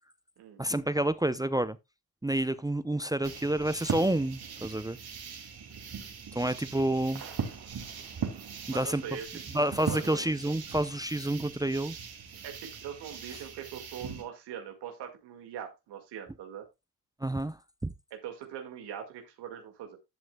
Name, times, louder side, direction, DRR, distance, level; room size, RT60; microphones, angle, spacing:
voice 1, 0.6-1.8 2.2-5.0 6.3-7.2 8.7-9.0 9.5-12.0 17.2-17.6, right 1 dB, 10° right, 0.6 m, -29 dB
sound 1, 3.2-14.2, right 6 dB, 65° right, 2.7 m, -40 dB
voice 2, 8.7-10.3 12.4-16.7 18.1-20.0, right 8 dB, 85° right, 2.1 m, -42 dB
12.5 x 7.7 x 2.3 m
supercardioid pair, 55°, 40 cm